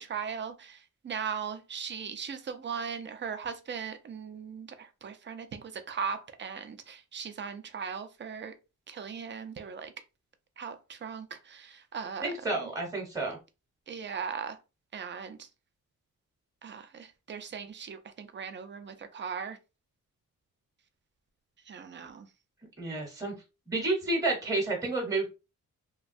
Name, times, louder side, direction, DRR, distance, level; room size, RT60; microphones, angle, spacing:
voice 1, 0.0-8.5 8.9-9.9 10.6-12.7 13.9-14.6 14.9-15.5 16.6-19.6 21.7-22.3, right 6 dB, 35° right, 0.4 m, -38 dB
voice 2, 12.2-13.4 22.8-23.3 23.7-25.3, right 2 dB, 10° right, 0.8 m, -30 dB
3.1 x 2.2 x 2.5 m
wide cardioid pair, 125°, 32 cm